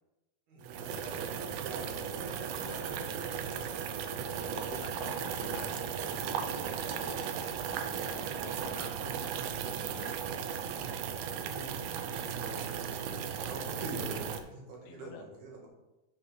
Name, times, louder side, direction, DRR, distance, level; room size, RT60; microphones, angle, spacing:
voice 1, 0.5-2.3 2.9-3.0 4.3-4.5 11.0-11.1 11.4-15.7, right 2 dB, 55° right, -2 dB, 2.8 m, -45 dB
sound 1, 0.6-14.4, right 7 dB, 80° right, 2.0 m, -36 dB
voice 2, 2.6-3.1 3.5-3.7 4.4-10.3 14.8-15.2, left 4 dB, 80° left, 4 dB, 2.6 m, -49 dB
8.4 x 5.6 x 5.9 m, 0.99 s
omnidirectional pair, 4.7 m